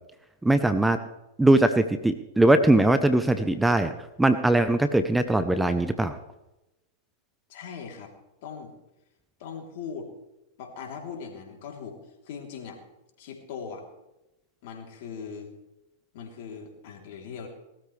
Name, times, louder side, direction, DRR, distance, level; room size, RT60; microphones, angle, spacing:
voice 1, 0.4-1.0 1.4-3.9 4.2-6.2, right 1 dB, 5° right, 10 dB, 0.8 m, -21 dB
voice 2, 7.5-8.1 8.4-8.7 9.4-10.1 10.6-12.8 13.2-13.9 14.6-15.5 16.1-17.5, left 6 dB, 60° left, 2 dB, 3.4 m, -40 dB
19.0 x 13.0 x 3.4 m, 0.96 s
hypercardioid pair, 105°, 0 cm